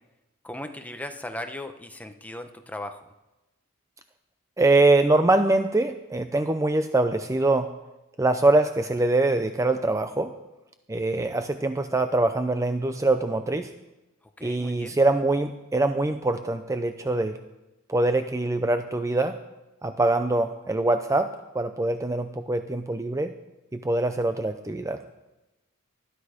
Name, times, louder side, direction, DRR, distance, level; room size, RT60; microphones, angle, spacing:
voice 1, 0.4-3.1 14.4-15.0, left 1 dB, 5° left, 6 dB, 1.0 m, -37 dB
voice 2, 4.6-7.7 8.2-10.3 10.9-13.7 14.4-17.4 17.9-19.4 19.8-23.3 23.7-25.0, right 2 dB, 15° right, 8 dB, 0.6 m, -23 dB
20.0 x 13.0 x 5.1 m, 1.0 s
head